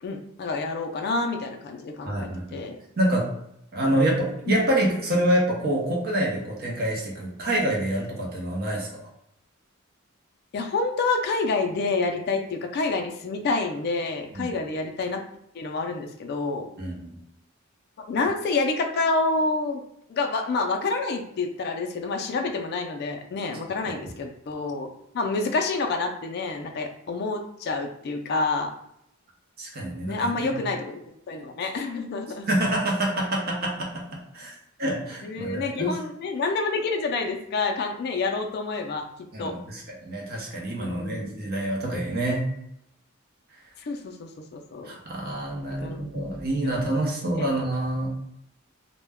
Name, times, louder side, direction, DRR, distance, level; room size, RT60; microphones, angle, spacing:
voice 1, 0.0-2.8 3.9-4.0 4.5-4.6 10.5-15.2 15.5-16.7 18.0-19.8 20.1-24.9 25.1-28.7 30.1-31.0 31.3-32.5 35.2-39.1 39.4-39.5 40.8-41.5 43.8-44.9 45.8-46.1 47.4-47.5, left 3 dB, 50° left, 4 dB, 0.3 m, -28 dB
voice 2, 2.0-2.6 3.0-3.3 3.7-9.0 14.3-14.5 16.8-17.1 29.6-30.6 32.4-35.9 39.3-42.5 44.8-48.2, right 1 dB, 50° right, -1 dB, 0.7 m, -27 dB
2.1 x 2.1 x 3.4 m, 0.78 s
head